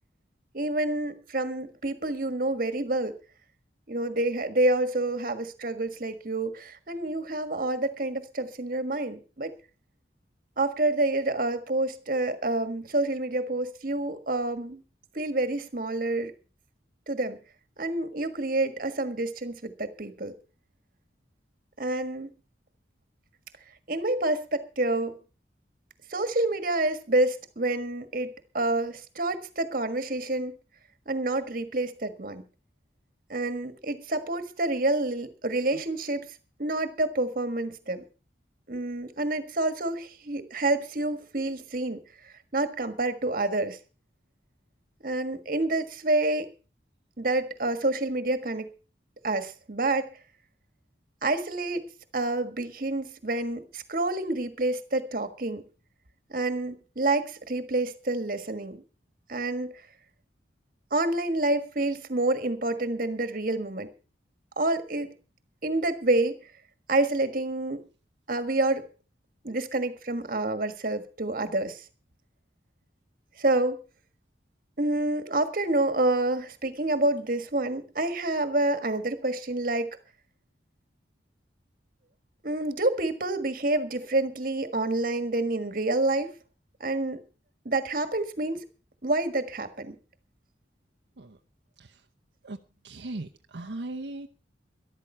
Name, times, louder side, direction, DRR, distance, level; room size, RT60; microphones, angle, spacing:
voice 1, 0.5-3.2 3.9-9.5 10.6-14.8 15.1-16.3 17.1-17.4 17.8-20.3 21.8-22.3 23.9-25.1 26.1-28.3 28.5-30.6 31.1-32.4 33.3-36.3 36.6-38.0 38.7-42.0 42.5-43.8 45.0-46.5 47.2-48.7 49.2-50.1 51.2-51.8 52.1-55.6 56.3-58.8 59.3-59.7 60.9-63.9 64.6-65.1 65.6-66.4 66.9-67.8 68.3-68.8 69.4-71.8 73.4-73.8 74.8-79.9 82.4-86.3 86.8-87.2 87.6-88.6 89.0-89.9, right 2 dB, 50° right, 1.5 m, -28 dB
voice 2, 92.8-94.3, right 2 dB, 75° right, 0.8 m, -38 dB
13.5 x 12.0 x 5.5 m
head